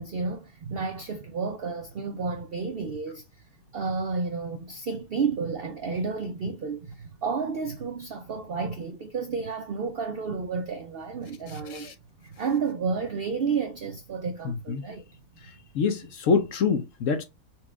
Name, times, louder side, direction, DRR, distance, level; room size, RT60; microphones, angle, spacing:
voice 1, 0.0-3.2 3.7-11.9 12.2-15.0, right 5 dB, 85° right, 0.5 m, -31 dB
voice 2, 15.7-17.2, left 5 dB, 65° left, 0.9 m, -25 dB
4.4 x 2.3 x 4.5 m
omnidirectional pair, 1.7 m